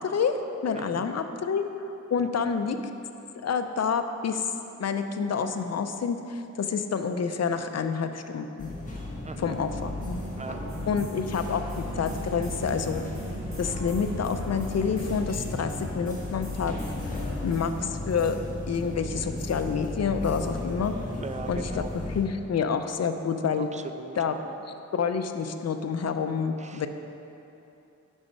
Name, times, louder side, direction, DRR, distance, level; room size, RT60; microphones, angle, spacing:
voice 1, 0.0-1.6 2.1-2.8 3.4-4.5 4.8-8.7 9.4-10.2 10.9-13.0 13.6-16.8 17.1-17.2 17.4-18.4 18.7-21.0 21.5-23.7 24.2-24.4 24.9-26.9, left 6 dB, 55° left, 8 dB, 0.5 m, -28 dB
voice 2, 0.7-1.1 2.2-2.5 9.2-9.6 10.4-10.6 10.9-11.3 21.2-21.9 23.6-24.6 26.6-26.9, right 4 dB, 25° right, 8 dB, 0.4 m, -41 dB
sound 1, 8.6-22.2, left 2 dB, 25° left, 1.4 m, -35 dB
sound 2, 9.3-15.2, right 4 dB, 70° right, 1.7 m, -44 dB
sound 3, 10.7-17.7, left 1 dB, 45° right, 2.1 m, -41 dB
8.8 x 6.3 x 5.3 m, 2.9 s
wide cardioid pair, 145°, 30 cm